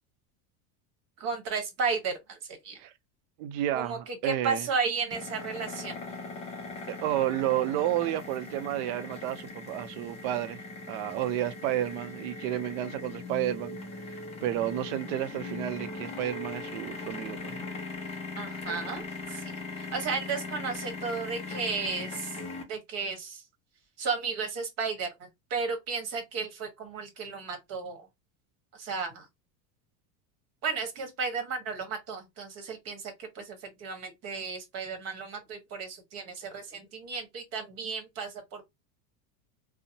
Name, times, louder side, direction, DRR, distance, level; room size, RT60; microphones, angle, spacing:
voice 1, 1.2-2.4 2.6-2.8 3.7-4.0 4.2-6.0 18.4-22.4 22.7-23.4 24.0-28.0 28.7-29.2 30.6-38.6, right 5 dB, 35° right, 1.0 m, -34 dB
voice 2, 3.4-4.7 6.9-17.7 19.3-19.4, right 13 dB, 55° right, 0.5 m, -31 dB
sound 1, 5.1-22.6, left 3 dB, 15° left, 0.4 m, -40 dB
2.7 x 2.0 x 2.7 m
supercardioid pair, 145°, 44 cm